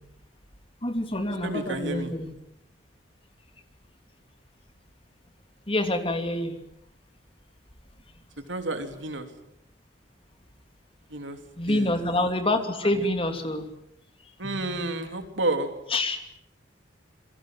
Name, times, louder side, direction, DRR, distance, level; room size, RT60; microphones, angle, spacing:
voice 1, 0.8-2.3 5.7-6.6 11.6-13.7 14.4-14.8 15.9-16.2, left 1 dB, 30° left, 6 dB, 2.9 m, -27 dB
voice 2, 1.4-2.1 8.5-9.3 11.1-11.4 11.7-11.9 14.4-15.7, right 2 dB, 75° right, 6 dB, 3.5 m, -30 dB
28.0 x 23.0 x 7.7 m, 0.77 s
head